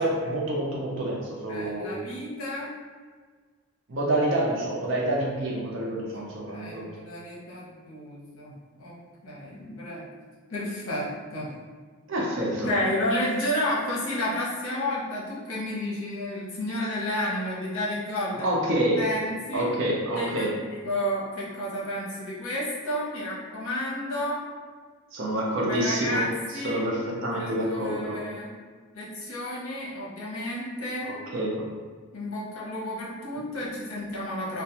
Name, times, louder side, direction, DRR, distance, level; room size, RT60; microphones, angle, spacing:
voice 1, 0.0-1.9 3.9-6.8 12.1-12.7 18.4-19.0 19.5-20.6 25.1-26.2 26.6-28.2 31.0-31.7, right 1 dB, 60° right, -3 dB, 0.5 m, -27 dB
voice 2, 1.5-2.7 6.1-9.0 9.2-10.1 10.5-11.5 12.4-18.5 19.0-19.7 20.1-24.4 25.7-26.8 27.3-28.5 28.9-31.1 32.1-34.6, left 1 dB, 70° left, -7 dB, 0.8 m, -31 dB
2.3 x 2.2 x 2.8 m, 1.5 s
head